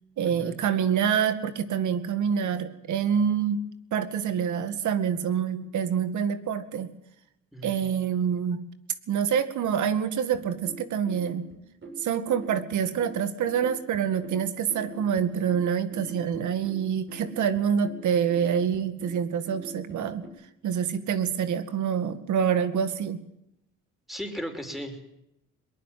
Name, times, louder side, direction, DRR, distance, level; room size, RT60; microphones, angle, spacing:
voice 1, 0.2-3.6 3.9-6.9 7.6-8.6 9.1-11.5 12.0-20.2 20.6-23.2, right 8 dB, 75° right, 11 dB, 2.2 m, -26 dB
sound 1, 10.3-20.3, right 3 dB, 40° right, 7.6 m, -44 dB
voice 2, 24.1-25.2, equal, ahead, 5 dB, 5.4 m, -36 dB
22.0 x 20.0 x 7.7 m, 0.81 s
cardioid pair, 90°, 30 cm